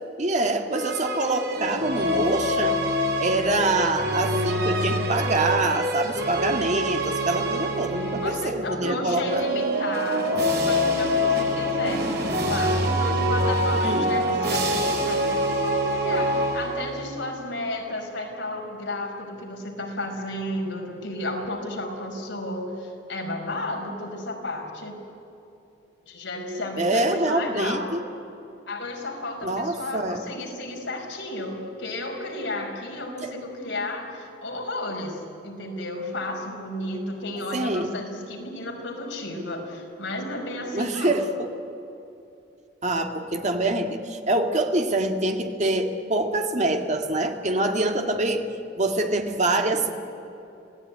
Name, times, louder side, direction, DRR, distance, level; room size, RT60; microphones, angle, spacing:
voice 1, 0.2-2.8 3.2-9.5 13.8-14.1 26.8-28.0 29.4-30.2 33.2-33.3 37.5-37.9 40.7-41.5 42.8-48.4 48.8-49.9, right 2 dB, 40° right, 5 dB, 1.9 m, -25 dB
sound 1, 0.7-8.6 9.2-17.1, equal, 60° right, 4.0 m, -25 dB
voice 2, 8.2-12.1 12.4-25.0 26.1-27.9 28.7-41.2, left 1 dB, 80° left, 1 dB, 5.2 m, -32 dB
27.0 x 17.5 x 9.7 m, 2.9 s
head